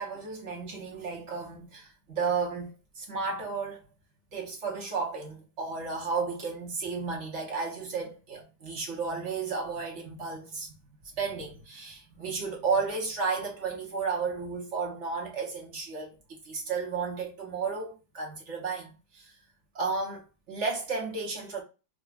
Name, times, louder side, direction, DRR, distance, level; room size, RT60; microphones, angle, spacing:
voice 1, 0.0-3.8 4.3-10.7 11.1-16.2 16.4-19.3 19.7-21.6, right 4 dB, 50° right, 1.1 m, -33 dB
4.9 x 2.3 x 2.3 m
omnidirectional pair, 1.8 m